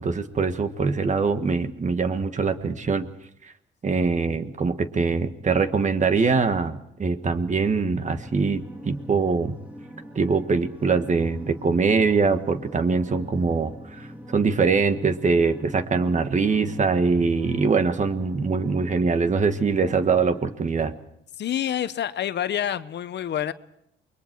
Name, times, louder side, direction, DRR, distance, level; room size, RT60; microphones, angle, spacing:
voice 1, 0.0-3.1 3.8-9.6 10.1-14.1 14.3-20.9, right 4 dB, 40° right, 1.5 m, -23 dB
sound 1, 8.0-20.6, equal, 10° right, 2.8 m, -42 dB
voice 2, 21.4-23.5, left 10 dB, 60° left, 0.9 m, -27 dB
28.5 x 22.0 x 4.6 m
cardioid pair, 90°, 20 cm